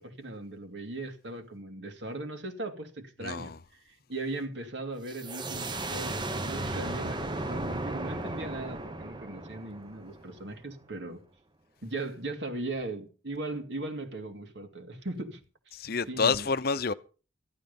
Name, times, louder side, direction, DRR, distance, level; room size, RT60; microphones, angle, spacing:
voice 1, 0.0-3.5 3.8-11.2 11.8-15.4 15.7-16.5, right 2 dB, 65° right, 2.3 m, -38 dB
voice 2, 3.2-3.6 6.5-7.5 15.7-16.9, left 4 dB, 50° left, 0.7 m, -30 dB
sound 1, 5.1-10.6, right 2 dB, 25° right, 0.9 m, -35 dB
14.5 x 11.5 x 5.3 m
head